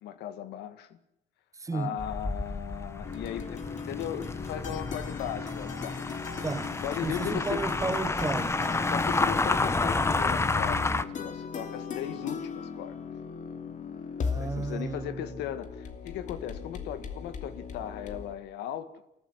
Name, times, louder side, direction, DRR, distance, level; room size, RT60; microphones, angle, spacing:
voice 1, 0.0-0.9 1.7-6.0 6.8-7.6 8.9-13.0 14.4-18.9, left 10 dB, 85° left, 1.9 m, -37 dB
voice 2, 1.5-2.0 6.4-6.7 7.0-8.7 14.2-15.3, right 3 dB, 20° right, 1.1 m, -33 dB
sound 1, 2.0-11.0, left 3 dB, 15° left, 1.1 m, -30 dB
sound 2, 3.0-18.3, left 5 dB, 45° left, 2.8 m, -39 dB
28.5 x 14.5 x 10.0 m
cardioid pair, 110°, 17 cm